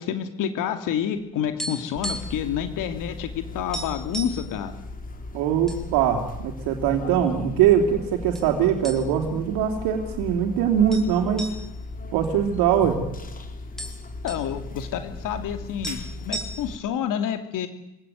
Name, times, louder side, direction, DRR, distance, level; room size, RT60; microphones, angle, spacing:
voice 1, 0.0-4.7 14.2-17.7, left 9 dB, 60° left, 8 dB, 2.8 m, -29 dB
sound 1, 1.0-2.5 2.7-2.9 3.3-3.4 3.7-4.5 5.1-5.8 6.2-6.3 7.0-7.7 8.3-8.5 8.8-9.4 9.7-9.8 10.9-13.0 13.3-13.4 13.6-14.5 15.5-15.6 15.8-16.9, right 2 dB, ahead, 5.0 m, -35 dB
sound 2, 2.0-16.8, left 2 dB, 25° left, 3.0 m, -37 dB
voice 2, 5.3-11.5 12.1-13.0, right 9 dB, 85° right, 2 dB, 3.7 m, -22 dB
25.5 x 17.0 x 9.5 m, 0.89 s
cardioid pair, 135°, 36 cm